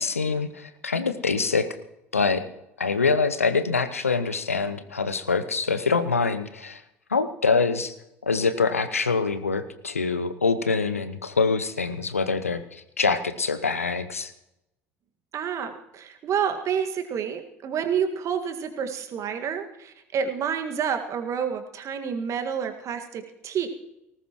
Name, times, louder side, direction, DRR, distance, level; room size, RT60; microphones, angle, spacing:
voice 1, 0.0-1.7 2.1-2.4 2.8-6.8 7.1-7.9 8.2-14.3, left 4 dB, 85° left, 12 dB, 0.8 m, -25 dB
voice 2, 15.3-23.7, right 7 dB, 45° right, 6 dB, 1.9 m, -29 dB
19.0 x 18.5 x 3.1 m, 0.85 s
figure-of-eight pair, 65°, 7 cm